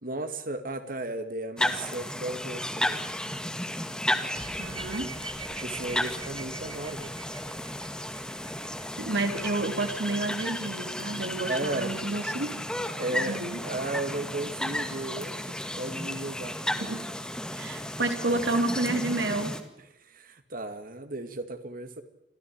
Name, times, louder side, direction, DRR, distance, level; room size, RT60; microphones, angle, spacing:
voice 1, 0.0-3.0 5.5-7.1 11.5-12.0 13.0-16.7 19.9-22.0, right 2 dB, 50° right, 9 dB, 2.2 m, -35 dB
sound 1, 1.6-19.6, left 1 dB, 5° left, 1.9 m, -33 dB
sound 2, 4.4-10.0, right 5 dB, 30° right, 1.4 m, -46 dB
voice 2, 4.6-5.1 9.0-12.6 13.1-13.6 16.7-17.2 17.5-19.5, right 2 dB, 70° right, 6 dB, 3.4 m, -30 dB
26.5 x 15.5 x 9.0 m, 0.86 s
head